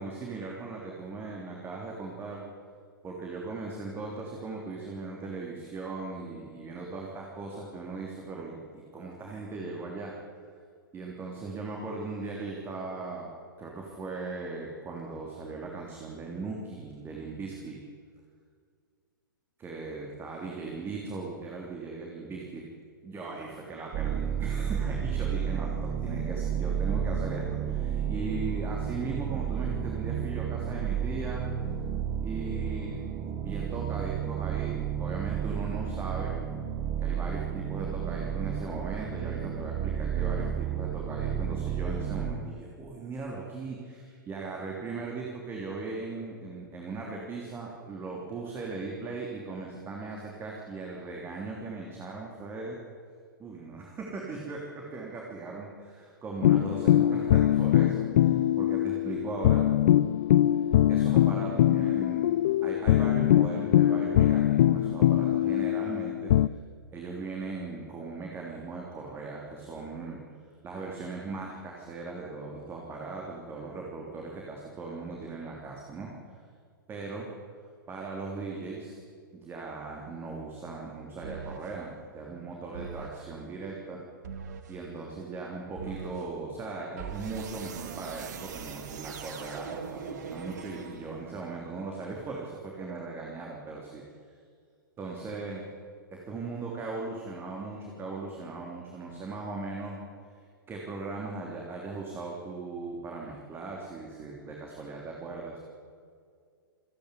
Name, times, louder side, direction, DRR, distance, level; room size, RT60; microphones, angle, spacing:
voice 1, 0.0-2.4 3.0-10.2 10.9-13.3 13.6-17.8 19.6-22.6 23.0-31.5 32.2-33.0 33.4-36.4 37.0-52.8 53.4-59.7 60.9-62.3 62.6-66.3 66.9-70.2 70.6-76.1 76.9-77.3 77.9-79.0 79.3-84.0 84.7-94.0 94.3-94.4 95.0-95.7 96.1-100.0 100.7-105.6, right 3 dB, 20° right, -1 dB, 3.2 m, -38 dB
sound 1, 23.9-42.3, right 8 dB, 35° right, 1.8 m, -31 dB
sound 2, 56.4-66.5, left 12 dB, 50° left, 0.5 m, -23 dB
sound 3, 81.2-81.8 82.7-83.3 84.2-84.8 85.8-86.3 87.0-91.4, right 6 dB, 55° right, 1.9 m, -41 dB
26.5 x 10.5 x 9.8 m, 2.2 s
figure-of-eight pair, 110°, 11 cm